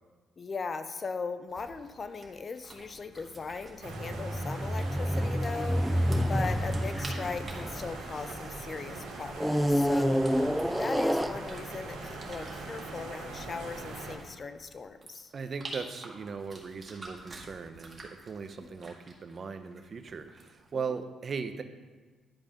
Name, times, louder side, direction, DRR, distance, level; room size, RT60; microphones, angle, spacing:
voice 1, 0.4-10.4 10.8-15.3 18.6-18.9 20.7-20.8, left 4 dB, 40° left, 10 dB, 0.7 m, -39 dB
sound 1, 1.5-20.7, right 2 dB, 25° right, 2.0 m, -50 dB
sound 2, 3.8-14.2, right 3 dB, 90° right, 1.9 m, -42 dB
sound 3, 3.9-8.6 9.3-11.9 12.6-12.7, equal, ahead, 0.3 m, -29 dB
voice 2, 10.4-10.8 15.3-21.6, right 5 dB, 45° right, 8 dB, 0.8 m, -39 dB
10.5 x 5.4 x 5.2 m, 1.4 s
cardioid pair, 90°, 0 cm